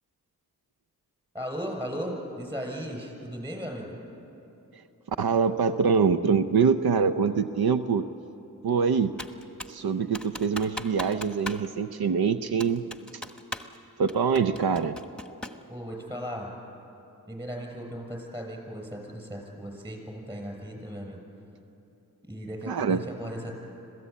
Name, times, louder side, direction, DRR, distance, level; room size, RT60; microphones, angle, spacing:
voice 1, 1.3-4.0 15.7-16.5 17.3-21.2 22.2-23.5, equal, 15° right, 1 dB, 6.9 m, -36 dB
voice 2, 5.1-8.1 8.6-9.1 9.7-12.8 14.0-15.0 22.7-23.0, right 6 dB, 80° right, 10 dB, 0.7 m, -24 dB
Computer keyboard, 9.2-9.8 10.1-11.7 11.9-12.0 12.6-13.8 14.1-15.7, left 1 dB, 5° left, 1.3 m, -38 dB
26.0 x 17.0 x 8.4 m, 3.0 s
cardioid pair, 45°, 37 cm